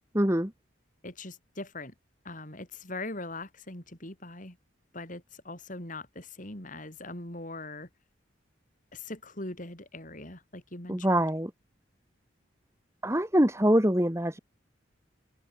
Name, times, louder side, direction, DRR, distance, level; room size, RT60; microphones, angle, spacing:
voice 1, 0.1-0.5 10.9-11.5 13.0-14.4, right 1 dB, 15° right, 2.5 m, -24 dB
voice 2, 1.0-1.9 2.2-4.6 4.9-7.9 8.9-11.2, left 2 dB, 40° left, 5.0 m, -41 dB
open air
head